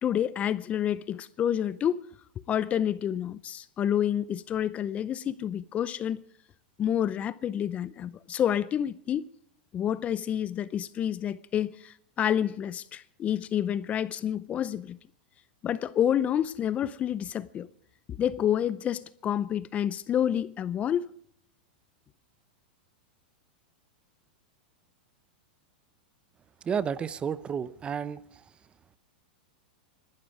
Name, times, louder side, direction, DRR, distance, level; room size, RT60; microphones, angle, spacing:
voice 1, 0.0-2.0 2.5-6.2 6.8-9.3 9.7-15.0 15.6-17.7 18.2-21.1, left 10 dB, 25° left, 0.6 m, -28 dB
voice 2, 26.6-28.2, right 7 dB, 20° right, 0.7 m, -31 dB
22.0 x 12.5 x 4.8 m
hypercardioid pair, 130°, 5 cm